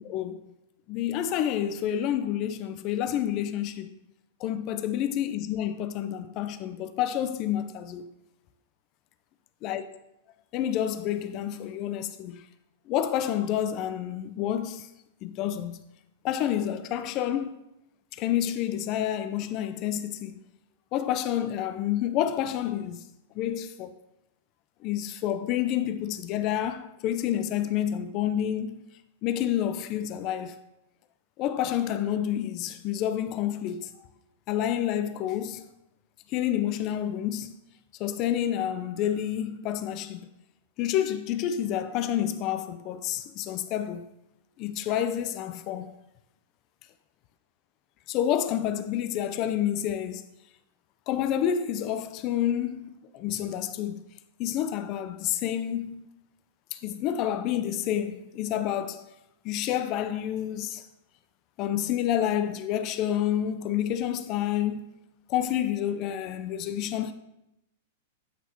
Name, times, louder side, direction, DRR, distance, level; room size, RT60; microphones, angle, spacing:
voice 1, 0.0-0.4 0.9-3.9 4.4-8.1 9.6-9.9 10.5-12.5 12.9-14.9 15.2-15.8 16.2-17.6 18.1-20.4 20.9-23.0 23.3-23.9 24.8-28.8 29.2-30.6 31.4-34.1 34.5-35.7 36.3-37.6 38.0-40.3 40.8-44.0 44.6-45.9 48.1-50.2 51.1-54.0 54.4-56.1 56.7-59.0 59.4-60.9 61.6-64.8 65.3-67.1, left 10 dB, 45° left, 0.4 m, -29 dB
8.2 x 3.0 x 4.3 m
hypercardioid pair, 110°, 0 cm